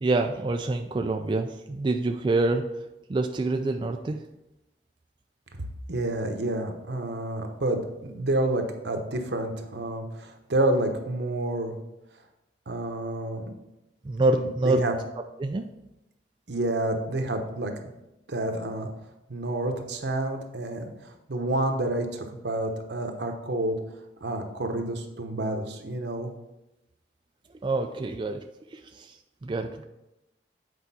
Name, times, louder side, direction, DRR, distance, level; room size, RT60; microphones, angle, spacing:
voice 1, 0.0-2.6 3.1-4.2 14.0-14.8 15.4-15.7 27.6-28.4 28.7-29.1 29.4-29.8, right 2 dB, 30° right, 4 dB, 0.3 m, -26 dB
voice 2, 5.9-11.7 12.7-13.5 14.4-15.0 16.5-17.7 18.3-18.9 19.3-23.8 24.2-26.3, right 1 dB, 70° right, 5 dB, 0.9 m, -29 dB
8.1 x 4.8 x 4.1 m, 0.93 s
head